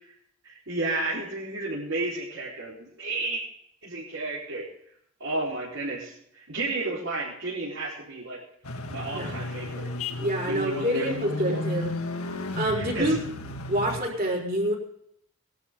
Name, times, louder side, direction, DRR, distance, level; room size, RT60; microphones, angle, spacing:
voice 1, 0.4-3.4 3.8-4.7 5.2-8.4 8.9-9.8 10.5-11.1 11.4-11.6 12.8-13.2, right 2 dB, 65° right, -7 dB, 4.4 m, -32 dB
sound 1, 8.6-14.0, left 2 dB, 90° left, 1.7 m, -33 dB
voice 2, 9.1-9.4 10.2-11.9 12.6-13.2 13.7-14.8, equal, 40° right, -2 dB, 4.7 m, -27 dB
19.5 x 12.5 x 3.8 m, 0.72 s
head